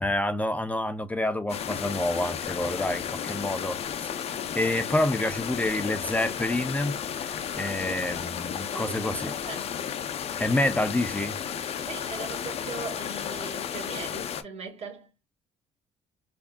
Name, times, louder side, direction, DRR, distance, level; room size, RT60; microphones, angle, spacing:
voice 1, 0.0-4.1 4.5-9.3 10.4-11.4, left 1 dB, 10° left, 0.4 m, -28 dB
sound 1, 1.5-14.4, left 8 dB, 60° left, 0.7 m, -33 dB
voice 2, 7.5-8.2 8.7-9.7 11.9-15.1, right 4 dB, 60° right, 1.9 m, -40 dB
4.8 x 2.7 x 2.2 m
cardioid pair, 90°, 12 cm